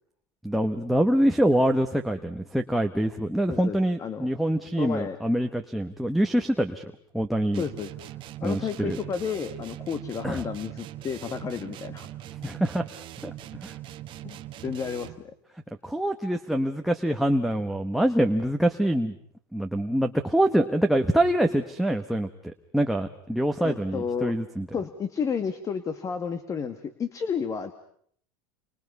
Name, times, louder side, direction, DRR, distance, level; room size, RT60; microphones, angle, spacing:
voice 1, 0.4-6.8 7.1-7.6 8.4-9.0 10.2-10.4 12.4-12.8 13.2-13.3 13.6-13.7 15.8-19.1 19.5-24.7, right 1 dB, ahead, 3 dB, 1.2 m, -25 dB
voice 2, 3.5-4.3 4.8-5.2 7.6-7.9 8.4-12.1 14.2-14.4 14.6-15.1 23.6-24.3 24.7-27.7, left 6 dB, 25° left, 11 dB, 1.6 m, -31 dB
sound 1, 7.5-15.3, right 13 dB, 45° right, 1.4 m, -41 dB
29.0 x 25.0 x 5.5 m, 0.63 s
supercardioid pair, 125°, 12 cm